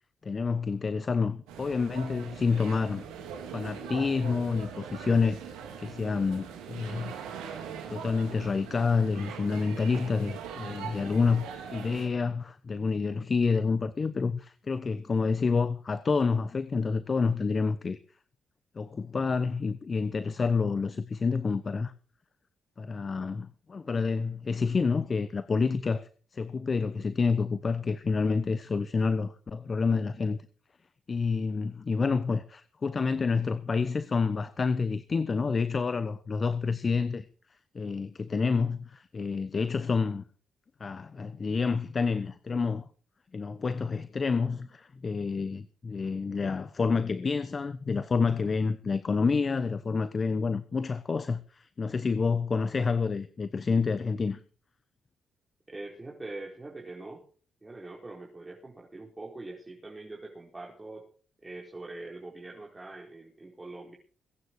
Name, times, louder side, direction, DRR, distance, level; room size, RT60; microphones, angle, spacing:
voice 1, 0.2-3.0 3.5-5.4 5.8-7.1 7.9-18.0 18.7-21.9 22.8-30.4 31.1-37.3 37.7-40.2 40.8-42.9 43.3-54.4, left 4 dB, 40° left, 1.0 m, -28 dB
sound 1, 1.5-12.1, right 7 dB, 90° right, 3.7 m, -41 dB
voice 2, 55.7-57.2 57.6-61.1 61.4-64.0, right 2 dB, 25° right, 4.4 m, -43 dB
22.0 x 9.5 x 4.7 m
supercardioid pair, 55°, 0 cm